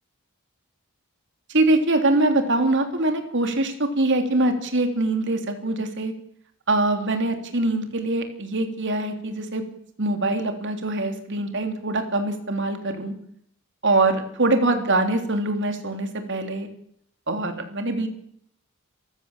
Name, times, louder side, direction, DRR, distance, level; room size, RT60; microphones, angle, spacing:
voice 1, 1.5-6.1 6.7-9.7 10.0-13.1 13.8-16.7 17.3-18.1, right 2 dB, 55° right, 6 dB, 3.4 m, -23 dB
26.5 x 15.5 x 7.5 m, 0.72 s
head